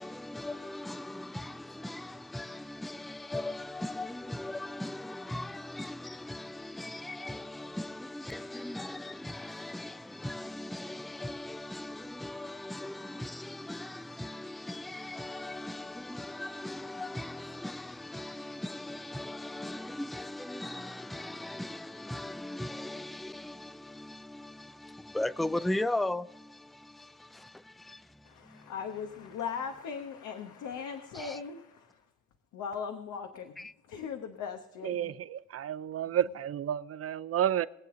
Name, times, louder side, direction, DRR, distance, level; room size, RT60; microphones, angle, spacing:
voice 1, 0.0-28.7 31.1-31.4 33.6-33.7, left 1 dB, ahead, 0.4 m, -38 dB
voice 2, 28.2-32.0 32.5-35.1 36.1-36.2, left 6 dB, 85° left, 1.2 m, -39 dB
voice 3, 34.8-37.7, right 10 dB, 50° right, 0.6 m, -31 dB
22.0 x 8.0 x 3.8 m
cardioid pair, 90°, 30 cm